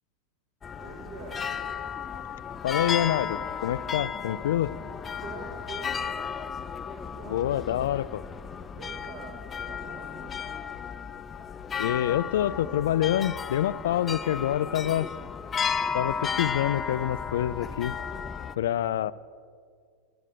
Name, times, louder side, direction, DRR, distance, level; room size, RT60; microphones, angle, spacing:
sound 1, 0.6-18.5, left 6 dB, 25° left, 0.5 m, -34 dB
voice 1, 0.7-1.5 5.2-6.1 7.1-7.5 8.7-10.5, right 4 dB, 55° right, 0 dB, 2.1 m, -44 dB
voice 2, 2.6-4.7 7.3-8.2 11.8-15.1 15.9-18.0 18.6-19.1, left 11 dB, 80° left, 18 dB, 0.3 m, -27 dB
10.5 x 10.0 x 6.8 m, 2.1 s
hypercardioid pair, 115°, 0 cm